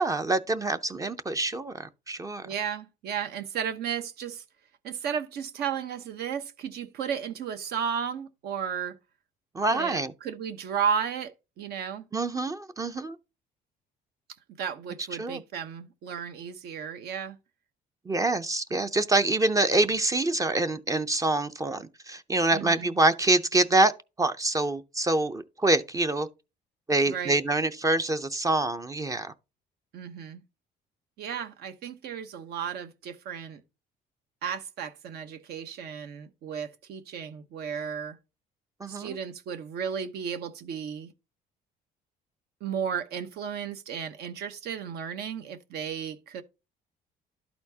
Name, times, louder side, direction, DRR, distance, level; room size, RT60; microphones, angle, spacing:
voice 1, 0.0-2.5 9.5-10.1 12.1-13.2 15.2-15.4 18.1-23.9 24.2-26.3 26.9-29.3 38.8-39.1, right 2 dB, 20° right, 0.5 m, -26 dB
voice 2, 2.4-4.4 4.8-9.0 9.7-12.1 14.6-17.4 22.5-22.9 27.1-27.4 29.9-30.4 31.2-33.6 34.4-38.2 38.9-41.1 42.6-46.4, right 7 dB, 70° right, 0.9 m, -34 dB
12.0 x 4.3 x 2.8 m
cardioid pair, 110°, 17 cm